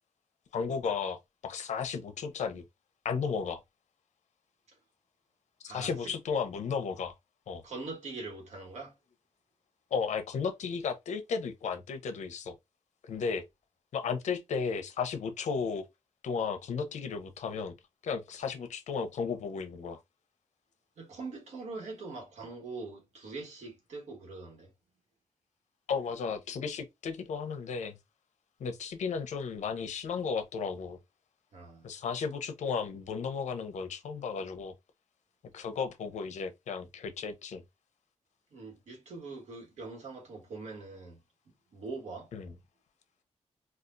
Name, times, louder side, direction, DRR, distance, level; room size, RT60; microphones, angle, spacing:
voice 1, 0.5-1.2 1.4-2.6 3.0-3.6 5.6-7.1 7.5-7.6 9.9-12.5 13.0-13.4 13.9-15.9 16.2-17.7 18.0-20.0 25.9-28.0 28.6-31.0 31.8-34.7 35.5-37.6 42.3-42.5, left 6 dB, 85° left, 0.7 m, -34 dB
voice 2, 5.7-6.1 7.6-8.9 21.0-24.7 31.5-31.9 38.5-41.2 41.7-42.3, right 3 dB, 75° right, 1.5 m, -42 dB
4.2 x 2.4 x 2.6 m
wide cardioid pair, 140°, 12 cm